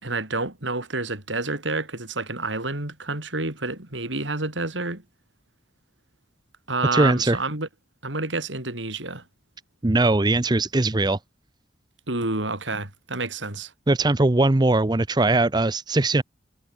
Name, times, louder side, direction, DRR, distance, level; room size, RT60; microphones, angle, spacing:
voice 1, 0.0-5.0 6.7-7.7 8.0-9.2 12.1-13.7, right 3 dB, 80° right, 5.0 m, -29 dB
voice 2, 6.9-7.4 9.8-11.2 13.9-16.2, right 2 dB, 20° right, 0.7 m, -20 dB
head